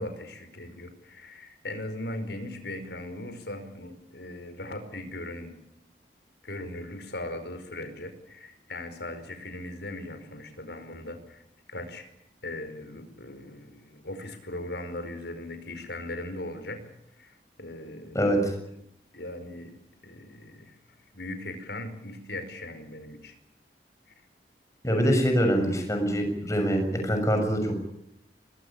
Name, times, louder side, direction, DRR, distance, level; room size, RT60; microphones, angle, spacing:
voice 1, 0.0-5.5 6.4-11.4 11.7-12.1 12.4-16.8 17.2-18.4 19.1-19.7 20.0-20.7 21.1-23.3, left 1 dB, 75° left, 8 dB, 4.9 m, -39 dB
voice 2, 18.1-18.5 24.8-27.8, equal, 20° left, 4 dB, 6.9 m, -24 dB
23.0 x 20.5 x 8.8 m, 0.78 s
head